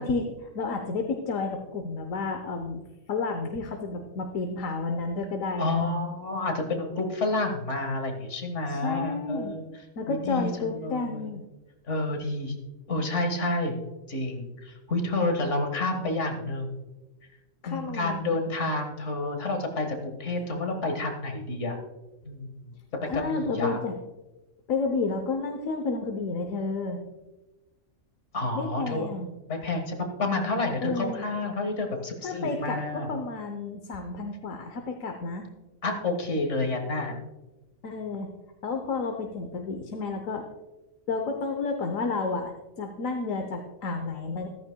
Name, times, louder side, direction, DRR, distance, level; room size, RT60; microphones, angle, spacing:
voice 1, 0.0-2.8 3.1-5.9 8.7-9.6 10.0-11.4 17.6-18.2 23.1-23.9 24.7-27.0 28.5-29.3 30.8-31.2 32.2-35.4 37.8-38.3 38.6-40.4 41.1-44.5, left 3 dB, 80° left, 5 dB, 1.3 m, -31 dB
voice 2, 5.6-9.7 10.1-11.3 11.9-12.5 12.9-13.7 14.1-16.8 17.7-21.8 22.2-22.7 23.1-23.8 28.3-29.1 29.5-33.1 35.8-37.2, left 2 dB, 65° left, 4 dB, 1.9 m, -29 dB
14.0 x 13.5 x 2.2 m, 1.1 s
omnidirectional pair, 1.4 m